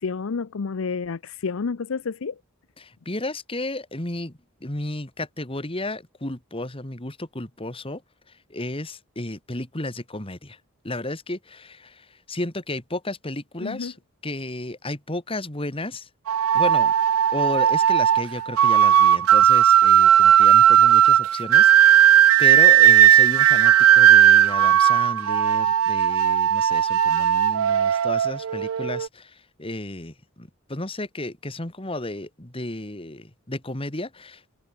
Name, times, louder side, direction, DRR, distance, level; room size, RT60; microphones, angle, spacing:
voice 1, 0.0-2.4 13.6-13.9, left 5 dB, 75° left, 0.6 m, -29 dB
voice 2, 2.8-8.0 8.3-10.6 10.8-14.0 14.2-16.1 16.5-16.9 17.3-22.1 22.4-34.4, left 2 dB, 25° left, 2.3 m, -33 dB
sound 1, 16.3-29.1, right 10 dB, 85° right, 0.4 m, -16 dB
head